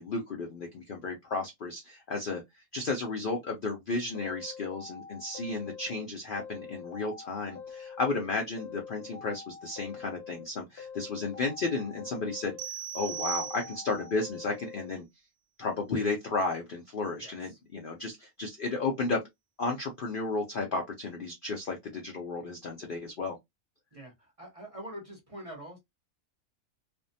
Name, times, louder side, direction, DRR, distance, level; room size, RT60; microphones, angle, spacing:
voice 1, 0.0-12.6 12.9-15.0 15.6-19.2 19.6-23.4, left 3 dB, 65° left, 0.5 m, -33 dB
sound 1, 4.1-6.0 6.4-8.2 8.6-10.4 10.8-12.7 13.0-14.9, left 6 dB, 50° left, 0.9 m, -45 dB
sound 2, 12.6-14.1, right 10 dB, 80° right, 1.0 m, -38 dB
voice 2, 17.2-17.6 23.9-25.8, right 1 dB, 30° right, 0.8 m, -45 dB
2.6 x 2.1 x 2.6 m
omnidirectional pair, 1.6 m